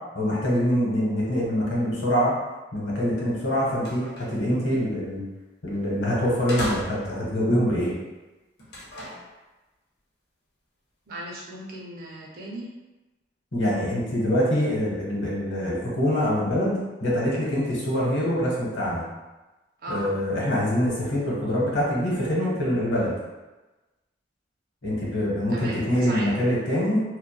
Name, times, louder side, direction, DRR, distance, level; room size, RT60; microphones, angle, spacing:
voice 1, 0.1-2.3 2.7-5.2 5.6-7.9 13.5-19.0 19.9-23.1 24.8-27.0, equal, 90° left, -5 dB, 0.8 m, -24 dB
sound 1, 3.2-3.3 3.7-4.5 5.7-5.9 6.5-7.3 8.6-9.3, equal, 60° left, 0.6 m, -36 dB
voice 2, 11.1-12.7 19.8-20.1 25.5-26.5, right 1 dB, 50° right, -4 dB, 0.5 m, -36 dB
2.8 x 2.1 x 2.2 m, 1.1 s
head